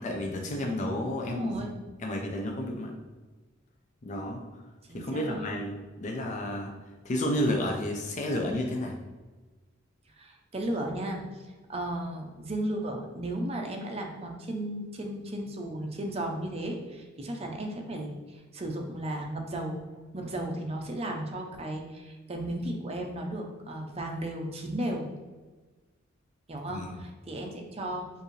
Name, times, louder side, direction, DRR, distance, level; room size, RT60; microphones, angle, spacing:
voice 1, 0.0-1.5 2.0-2.9 4.0-4.4 4.9-6.7 7.0-9.0 26.7-27.0, left 1 dB, 40° left, 1 dB, 0.5 m, -31 dB
voice 2, 1.3-1.7 4.9-5.5 10.2-11.2 11.7-19.8 20.1-25.1 26.5-28.1, right 1 dB, 30° right, 2 dB, 0.6 m, -35 dB
4.7 x 2.6 x 3.2 m, 1.3 s
head